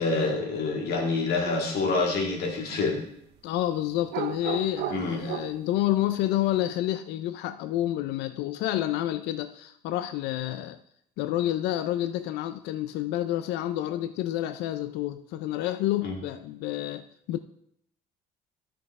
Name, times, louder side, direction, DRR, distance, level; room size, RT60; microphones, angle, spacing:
voice 1, 0.0-3.0 4.9-5.2 16.0-16.2, left 3 dB, 70° left, 1 dB, 2.3 m, -27 dB
sound 1, 1.4-1.7 4.1-5.6, right 11 dB, 80° right, 0.6 m, -34 dB
voice 2, 3.4-10.8 11.2-17.4, left 13 dB, 85° left, 11 dB, 0.4 m, -29 dB
12.5 x 5.5 x 3.6 m, 0.70 s
cardioid pair, 110°, 17 cm